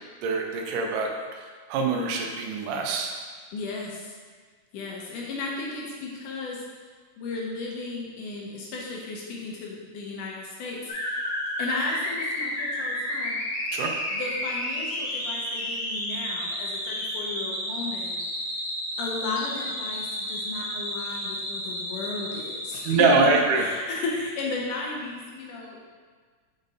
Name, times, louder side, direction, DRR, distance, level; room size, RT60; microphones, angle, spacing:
voice 1, 0.2-3.1 13.7-14.0 22.9-23.6, right 4 dB, 80° right, 1 dB, 2.3 m, -24 dB
voice 2, 3.5-4.2 4.7-6.6 7.2-11.2 11.6-13.4 14.1-18.2 19.0-23.3 23.6-26.0, left 3 dB, 75° left, -2 dB, 2.2 m, -34 dB
sound 1, 10.9-23.2, left 1 dB, 60° left, 1.9 m, -31 dB
5.3 x 5.1 x 4.1 m, 1.5 s
omnidirectional pair, 3.9 m